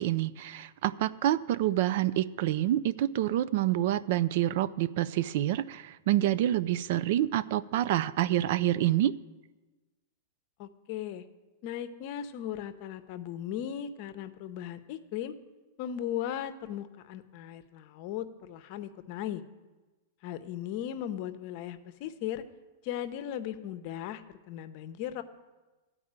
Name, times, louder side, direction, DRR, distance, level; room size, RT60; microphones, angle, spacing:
voice 1, 0.0-9.1, right 13 dB, 60° right, 17 dB, 0.3 m, -27 dB
voice 2, 10.6-11.2 11.6-15.3 15.8-19.4 20.2-22.4 22.8-25.2, left 10 dB, 50° left, 11 dB, 0.7 m, -37 dB
13.5 x 4.8 x 8.8 m, 1.2 s
hypercardioid pair, 140°, 0 cm